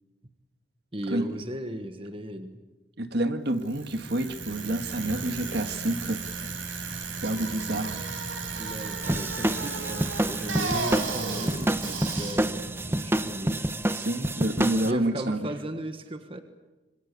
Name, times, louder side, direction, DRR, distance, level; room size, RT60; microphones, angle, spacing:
voice 1, 0.9-2.6 8.6-11.8 12.1-13.7 14.8-16.4, right 1 dB, 30° right, 7 dB, 1.5 m, -36 dB
voice 2, 3.0-6.2 7.2-8.0 13.9-15.4, right 1 dB, 55° right, 8 dB, 1.9 m, -28 dB
Bicycle, 3.6-13.7, right 4 dB, 90° right, 6.4 m, -34 dB
sound 1, 9.0-14.9, right 1 dB, 10° right, 1.0 m, -28 dB
26.5 x 24.5 x 8.4 m, 1.1 s
head